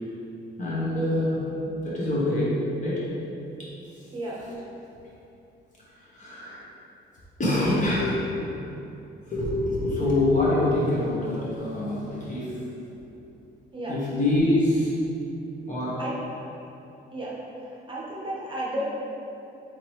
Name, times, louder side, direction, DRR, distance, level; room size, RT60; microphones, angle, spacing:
voice 1, 0.6-3.1 3.6-3.7 4.0-4.1 4.4-4.5 5.9-6.6 7.4-8.4 9.2-12.7 13.9-14.9 15.7-16.0, left 1 dB, 40° left, -7 dB, 1.1 m, -25 dB
voice 2, 17.9-18.8, right 1 dB, 25° right, -6 dB, 0.8 m, -32 dB
3.7 x 2.9 x 3.0 m, 2.8 s
cardioid pair, 90°, 20 cm